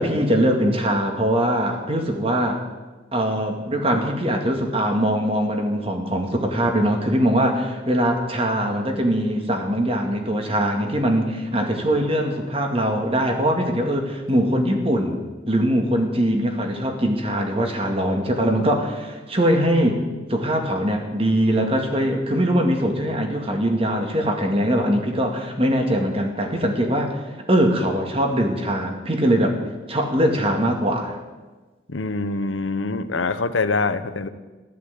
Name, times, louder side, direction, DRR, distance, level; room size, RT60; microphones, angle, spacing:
voice 1, 0.0-2.6 3.1-15.2 15.5-20.0 20.3-27.2 27.5-29.6 29.9-31.1, equal, 30° right, 4 dB, 2.2 m, -22 dB
voice 2, 31.9-34.3, left 3 dB, 85° left, 11 dB, 1.0 m, -24 dB
14.0 x 12.0 x 8.4 m, 1.2 s
head